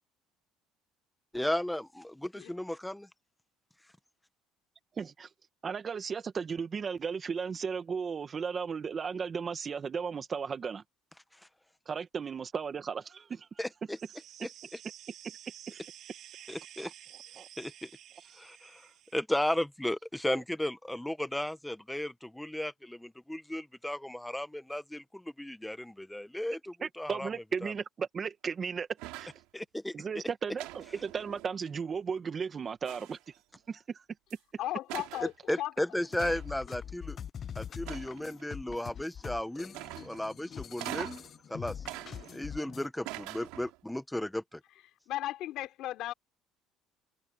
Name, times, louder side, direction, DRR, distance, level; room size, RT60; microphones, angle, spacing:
voice 1, 1.3-3.1 13.6-14.0 14.4-14.5 16.5-16.9 17.6-17.9 18.4-27.3 27.6-27.7 29.5-29.9 35.2-37.2 37.6-39.8 40.0-41.2 41.5-41.8 42.3-44.6, left 1 dB, 5° left, 1.2 m, -35 dB
voice 2, 4.9-5.3 5.6-10.8 11.9-13.5 15.7-15.8 17.4-17.5 20.3-20.4 26.8-28.9 29.2-29.3 29.9-33.3 33.7-34.0, right 6 dB, 35° right, 1.8 m, -35 dB
sound 1, 13.9-19.2, right 11 dB, 55° right, 7.8 m, -51 dB
sound 2, 29.0-29.4 30.6-31.7 32.8-33.4 34.3-34.4 34.9-35.3 36.2-36.6 37.8-38.4 39.7-40.3 40.8-41.3 41.8-42.6 43.0-43.8, right 20 dB, 85° right, 3.1 m, -43 dB
voice 3, 34.6-35.3 35.6-35.7 45.1-46.1, left 14 dB, 70° left, 3.6 m, -35 dB
sound 3, 35.9-42.9, left 8 dB, 40° left, 0.6 m, -43 dB
cardioid pair, 105°, 0 cm